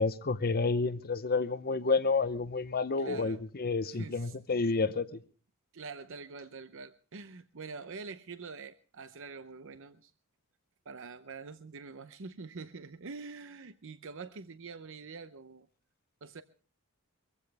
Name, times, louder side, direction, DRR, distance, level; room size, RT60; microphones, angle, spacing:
voice 1, 0.0-5.2, left 4 dB, 45° left, 0.8 m, -30 dB
voice 2, 3.0-3.4 3.9-4.4 5.7-10.1 10.9-15.7 16.2-16.4, right 4 dB, 60° right, 0.7 m, -45 dB
23.0 x 15.5 x 3.5 m
head